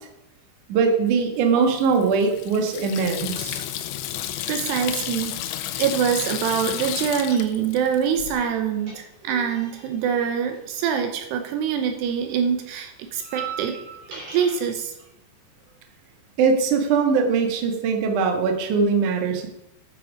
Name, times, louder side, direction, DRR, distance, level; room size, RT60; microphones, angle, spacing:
voice 1, 0.7-3.7 16.4-19.5, right 5 dB, 60° right, 4 dB, 2.5 m, -21 dB
Water tap faucet / Sink (filling or washing), 1.6-8.4, left 11 dB, 80° left, 3.0 m, -32 dB
voice 2, 4.5-5.4 5.8-13.8 14.1-14.9, right 7 dB, 80° right, 6 dB, 2.9 m, -24 dB
sound 1, 7.2-7.9 8.2-11.6 11.8-14.7, right 6 dB, 40° right, 4.5 m, -40 dB
11.5 x 8.8 x 5.1 m, 0.88 s
omnidirectional pair, 5.0 m